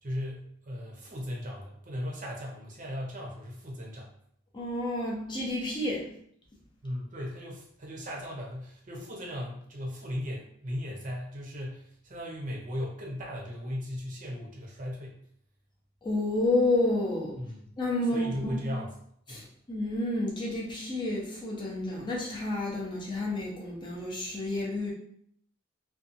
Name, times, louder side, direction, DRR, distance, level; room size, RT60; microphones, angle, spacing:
voice 1, 0.0-4.1 6.8-15.2 17.4-17.7 18.0-18.9 19.3-19.5, equal, 40° right, -2 dB, 0.7 m, -37 dB
voice 2, 4.5-6.1 16.0-17.4 17.8-18.6 19.3-24.9, left 2 dB, 25° left, -3 dB, 0.6 m, -30 dB
2.6 x 2.3 x 2.5 m, 0.68 s
head